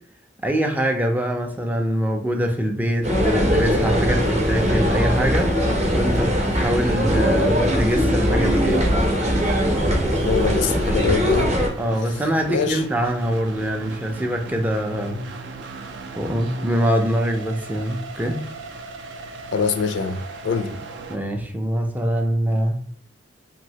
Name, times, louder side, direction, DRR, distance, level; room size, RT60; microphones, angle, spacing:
voice 1, 0.4-8.8 11.8-15.3 16.2-18.4 21.1-22.9, equal, 10° right, 0.4 m, -24 dB
sound 1, 3.0-11.7, equal, 40° right, 0.7 m, -20 dB
sound 2, 3.0-21.2, right 3 dB, 75° right, 0.4 m, -38 dB
voice 2, 10.1-11.5 12.5-12.8 19.5-20.7, left 6 dB, 75° left, 0.4 m, -24 dB
3.0 x 2.7 x 2.7 m
head